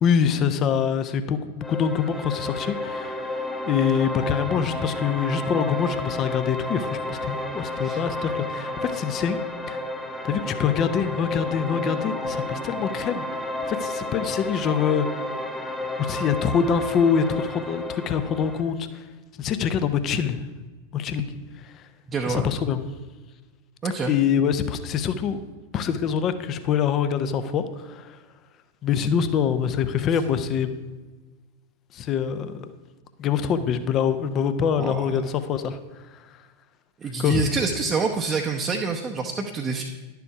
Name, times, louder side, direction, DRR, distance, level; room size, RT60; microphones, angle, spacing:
voice 1, 0.0-3.2 3.7-9.4 9.7-9.8 10.2-15.1 16.0-19.0 19.4-20.4 20.9-21.3 22.3-22.8 24.1-25.4 25.7-28.2 28.8-30.8 31.9-32.7 33.2-35.8 37.2-37.5, left 7 dB, 30° left, 11 dB, 0.7 m, -25 dB
sound 1, 1.6-18.6, left 2 dB, 10° left, 1.0 m, -31 dB
voice 2, 22.1-22.5 23.8-24.1 34.8-35.3 37.0-39.8, right 4 dB, 20° right, 1 dB, 0.8 m, -27 dB
11.0 x 7.0 x 4.7 m, 1.3 s
figure-of-eight pair, 90°, 0 cm